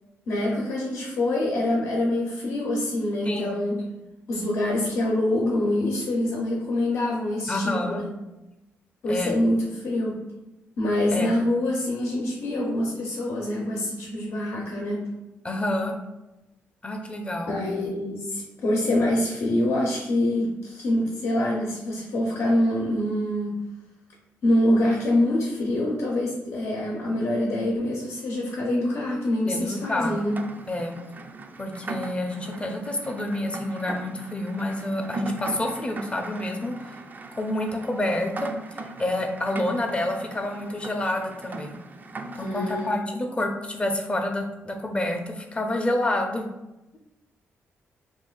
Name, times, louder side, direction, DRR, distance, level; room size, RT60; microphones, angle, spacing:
voice 1, 0.3-3.8 4.3-8.1 9.0-10.2 10.8-15.1 17.5-23.6 24.4-30.4 42.4-42.9, left 1 dB, 70° left, -2 dB, 0.7 m, -25 dB
voice 2, 3.2-3.6 7.5-8.0 9.1-9.4 11.1-11.3 15.4-15.9 16.8-17.5 29.4-30.2 30.7-31.0 31.6-36.7 37.3-38.5 39.0-41.8 42.4-46.4, left 1 dB, 25° left, 3 dB, 0.5 m, -28 dB
Rain, 29.7-43.0, right 3 dB, 40° right, 0.3 m, -39 dB
2.5 x 2.4 x 3.7 m, 0.97 s
cardioid pair, 75°, 5 cm